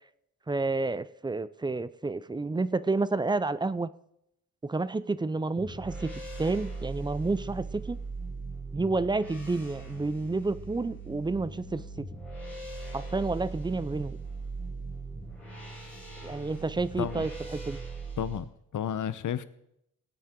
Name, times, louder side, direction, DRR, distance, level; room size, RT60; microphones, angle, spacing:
voice 1, 0.5-3.9 4.6-6.1 6.4-8.0 8.7-12.2 12.9-14.2 16.2-17.8, right 3 dB, 15° right, 0.4 m, -30 dB
sound 1, 5.6-18.4, right 3 dB, 5° left, 5.2 m, -40 dB
voice 2, 17.0-17.3 18.2-18.5 18.7-19.4, left 9 dB, 60° left, 0.8 m, -31 dB
20.0 x 8.5 x 3.7 m
cardioid pair, 100°, 35 cm